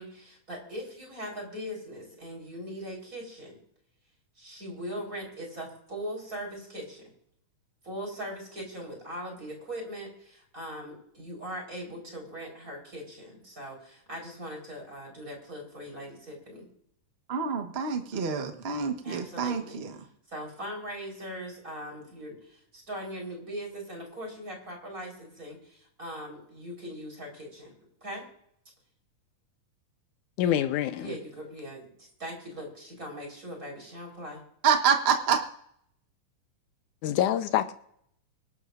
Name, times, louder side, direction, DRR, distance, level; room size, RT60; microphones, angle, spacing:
voice 1, 0.0-3.6 4.4-7.1 7.8-16.7 18.1-18.3 19.0-19.8 20.3-27.7 28.0-28.3 31.0-34.4, equal, 25° right, 4.6 m, -40 dB
voice 2, 17.3-19.9 34.6-35.4, right 6 dB, 55° right, 0.6 m, -27 dB
voice 3, 30.4-31.1 37.0-37.7, left 11 dB, 85° left, 2.3 m, -26 dB
25.0 x 12.5 x 2.6 m
omnidirectional pair, 3.5 m